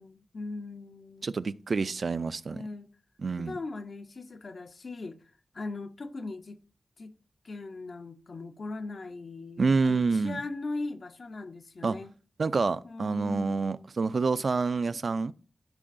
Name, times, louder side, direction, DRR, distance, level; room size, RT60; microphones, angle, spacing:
voice 1, 0.0-1.4 2.5-2.9 3.4-5.2 5.5-6.6 7.0-7.1 7.4-12.1 12.8-13.9, left 3 dB, 60° left, 0.7 m, -39 dB
voice 2, 1.2-2.6 3.2-3.6 9.6-10.4 11.8-12.0 12.4-15.3, right 4 dB, 65° right, 0.3 m, -27 dB
12.0 x 5.3 x 2.5 m
wide cardioid pair, 85°, 0 cm